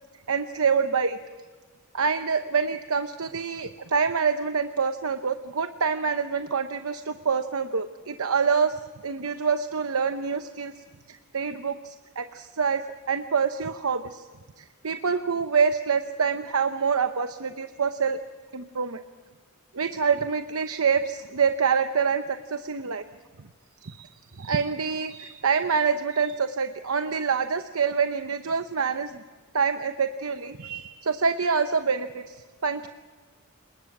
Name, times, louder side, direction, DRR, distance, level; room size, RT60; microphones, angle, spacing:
voice 1, 0.3-1.2 1.9-8.8 9.0-10.7 11.1-14.2 14.6-18.2 18.5-19.0 19.7-23.0 23.8-29.2 29.5-32.4 32.6-32.9, right 5 dB, 70° right, 8 dB, 0.9 m, -26 dB
30.0 x 20.0 x 6.1 m, 1.4 s
head